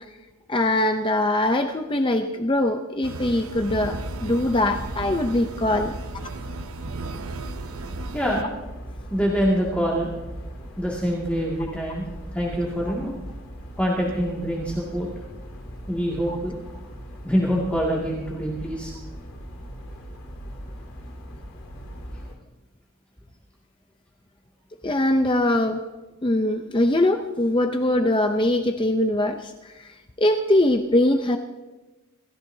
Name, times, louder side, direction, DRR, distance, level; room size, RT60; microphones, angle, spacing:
voice 1, 0.5-5.9 16.3-16.4 24.8-25.8 26.2-29.9 30.2-31.4, left 1 dB, 20° left, 6 dB, 0.6 m, -22 dB
sound 1, 3.0-8.4, right 3 dB, 75° right, 0.7 m, -36 dB
sound 2, 3.4-22.3, equal, 70° left, 2.7 m, -39 dB
voice 2, 8.1-8.5 9.1-10.1 10.8-12.1 12.3-13.1 13.8-15.1 15.9-16.7 17.2-18.9, equal, 5° left, -5 dB, 2.1 m, -25 dB
27.0 x 14.5 x 2.7 m, 1.1 s
head